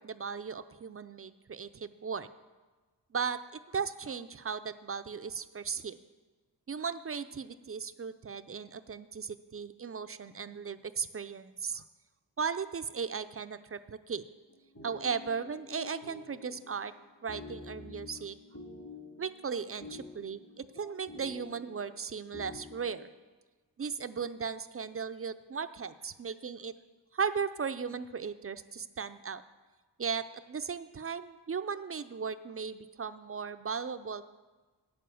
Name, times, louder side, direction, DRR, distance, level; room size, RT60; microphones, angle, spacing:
voice 1, 0.0-2.3 3.1-6.0 6.7-11.8 12.4-14.2 14.8-16.9 17.2-18.4 19.2-23.1 23.8-26.7 27.1-29.4 30.0-34.2, right 6 dB, 30° right, 11 dB, 0.4 m, -37 dB
sound 1, 14.5-23.0, left 2 dB, 45° left, 2.1 m, -49 dB
8.6 x 6.9 x 7.6 m, 1.3 s
cardioid pair, 75°, 45 cm